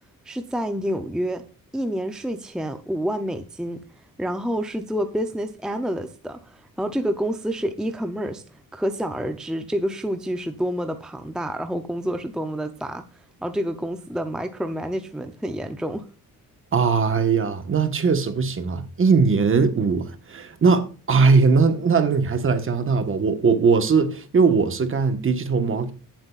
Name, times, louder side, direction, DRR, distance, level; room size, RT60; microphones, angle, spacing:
voice 1, 0.2-1.4 1.7-16.1, equal, ahead, 0.6 m, -28 dB
voice 2, 16.7-25.9, right 5 dB, 35° right, 1.3 m, -20 dB
16.0 x 7.7 x 2.4 m
wide cardioid pair, 160°, 35 cm